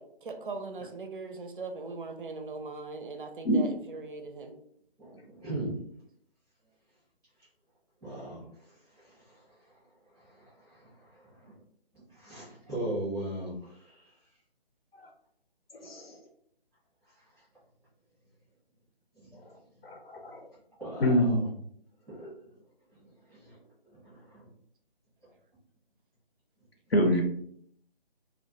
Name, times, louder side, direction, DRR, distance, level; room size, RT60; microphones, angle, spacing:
voice 1, 0.0-4.5, right 3 dB, 60° right, 6 dB, 0.4 m, -40 dB
voice 2, 5.0-5.8 8.0-8.5 9.1-9.4 10.2-10.9 11.4-11.5 12.1-14.0 19.1-19.3 20.8-21.2 22.1-22.3 23.3-23.6 23.9-24.5, right 1 dB, ahead, -11 dB, 0.6 m, -38 dB
voice 3, 15.7-16.2 19.8-20.5 21.0-21.6 26.9-27.2, equal, 75° left, 2 dB, 0.6 m, -26 dB
2.1 x 2.1 x 2.8 m, 0.67 s
figure-of-eight pair, 155°, 30 cm